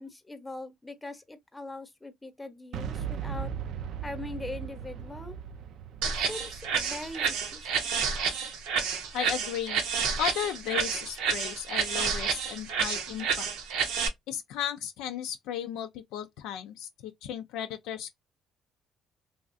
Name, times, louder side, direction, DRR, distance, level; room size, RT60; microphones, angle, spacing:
voice 1, 0.0-3.5 4.0-5.4 6.0-7.9, left 2 dB, 15° left, 0.8 m, -41 dB
Boom, 2.7-8.6, right 8 dB, 70° right, 0.4 m, -38 dB
sound 1, 6.0-14.1, right 6 dB, 90° right, 0.8 m, -30 dB
voice 2, 9.1-9.8 10.2-13.5 14.3-18.2, left 10 dB, 90° left, 0.3 m, -35 dB
3.1 x 2.4 x 2.5 m
cardioid pair, 95°, 0 cm